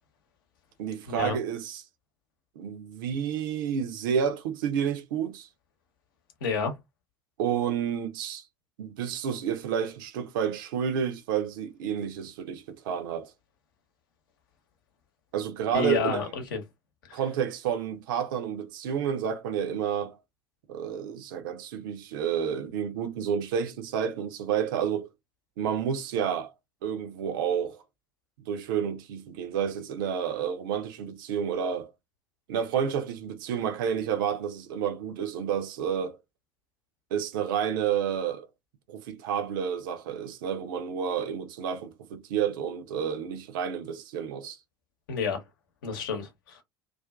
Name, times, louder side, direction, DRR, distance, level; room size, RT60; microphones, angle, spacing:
voice 1, 0.8-1.8 2.6-5.5 7.4-8.4 8.8-13.3 15.3-16.3 17.1-20.1 20.7-25.1 25.6-26.5 26.8-27.8 28.5-31.9 32.5-36.2 37.1-38.5 38.9-44.6, right 8 dB, 65° right, 0.5 m, -30 dB
voice 2, 6.4-6.7 15.7-16.6 17.1-17.2 45.1-45.4 45.8-46.6, left 5 dB, 65° left, 0.9 m, -30 dB
2.5 x 2.4 x 2.2 m
figure-of-eight pair, 70°, 12 cm